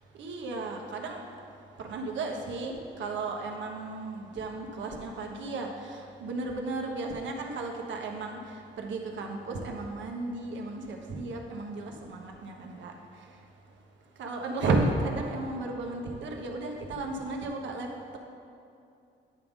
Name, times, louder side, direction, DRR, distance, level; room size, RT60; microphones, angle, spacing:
voice 1, 0.2-1.2 1.8-8.4 8.8-12.9 14.2-17.9, right 3 dB, 70° right, 2 dB, 1.1 m, -34 dB
9.4 x 3.6 x 6.2 m, 2.6 s
cardioid pair, 90°, 20 cm